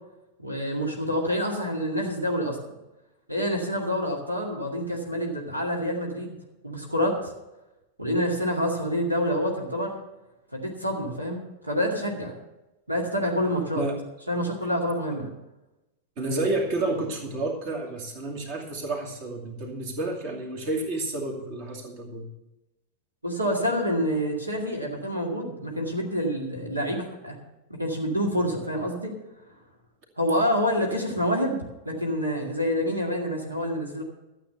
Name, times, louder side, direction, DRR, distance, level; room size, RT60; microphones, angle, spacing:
voice 1, 0.4-2.6 3.3-6.4 6.6-7.3 8.0-9.9 10.5-12.4 12.9-13.9 14.3-15.3 23.2-27.4 27.7-29.1 30.2-31.6 31.8-34.0, equal, 85° right, 0 dB, 2.2 m, -27 dB
voice 2, 16.2-22.3, right 2 dB, 45° right, 1 dB, 2.5 m, -30 dB
13.0 x 8.0 x 6.7 m, 0.98 s
figure-of-eight pair, 90°, 0 cm